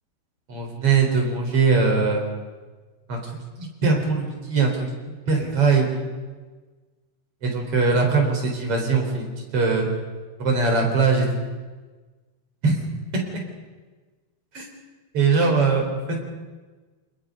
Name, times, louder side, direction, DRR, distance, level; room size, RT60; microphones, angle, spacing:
voice 1, 0.5-2.3 3.1-3.2 3.6-4.9 5.3-6.1 7.4-9.9 10.4-11.4 12.6-12.8 14.5-14.7 15.1-16.2, right 4 dB, 35° right, 1 dB, 4.7 m, -21 dB
28.0 x 21.0 x 5.4 m, 1.3 s
omnidirectional pair, 4.8 m